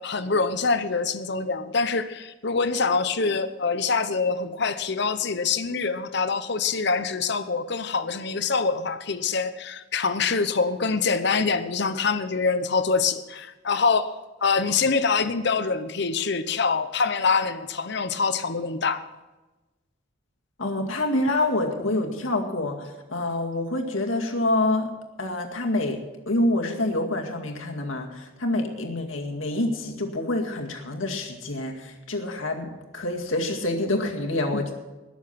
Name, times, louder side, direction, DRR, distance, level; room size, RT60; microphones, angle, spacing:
voice 1, 0.0-14.1 14.4-19.0 21.8-21.9 34.5-34.6, left 4 dB, 55° left, 11 dB, 0.9 m, -25 dB
voice 2, 20.6-24.9 25.2-26.0 26.3-34.7, left 2 dB, 85° left, 2 dB, 2.2 m, -27 dB
21.0 x 7.3 x 5.9 m, 1.1 s
head